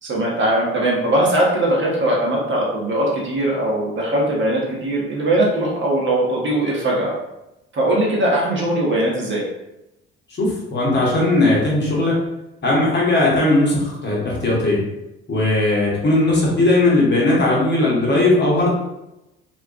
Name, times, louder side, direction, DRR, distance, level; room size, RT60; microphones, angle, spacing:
voice 1, 0.0-7.1 7.7-9.4, right 1 dB, 40° right, -3 dB, 0.9 m, -20 dB
voice 2, 10.4-12.2 12.6-14.8 15.3-18.7, left 2 dB, 35° left, -4 dB, 1.0 m, -18 dB
2.3 x 2.2 x 2.4 m, 0.90 s
hypercardioid pair, 50°, 30 cm